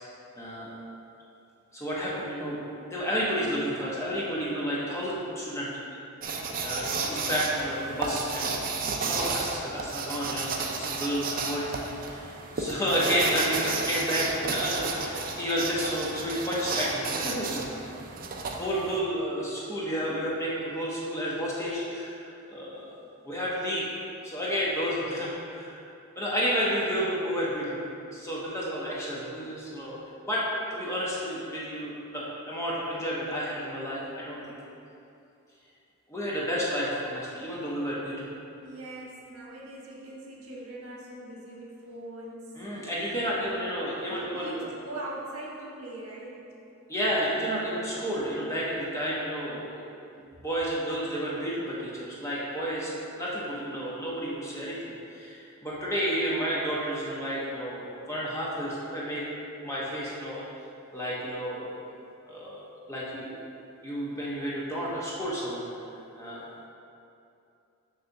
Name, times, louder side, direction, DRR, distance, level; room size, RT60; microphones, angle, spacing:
voice 1, 0.3-0.7 1.7-2.6 2.9-6.0 6.6-8.6 9.0-17.6 18.6-23.0 23.2-23.9 24.2-25.8 26.2-27.9 28.1-30.0 30.2-34.4 36.1-38.3 42.5-44.7 46.9-49.8 50.2-52.9 53.2-54.8 55.1-59.2 59.6-60.4 60.9-61.8 62.3-63.4 63.8-65.7 66.2-66.4, equal, 15° left, -7 dB, 1.0 m, -31 dB
sound 1, 6.2-19.0, right 4 dB, 40° right, 0.5 m, -32 dB
voice 2, 38.6-42.6 43.5-46.5, right 1 dB, 85° right, -3 dB, 1.2 m, -41 dB
6.7 x 3.3 x 5.8 m, 2.7 s
head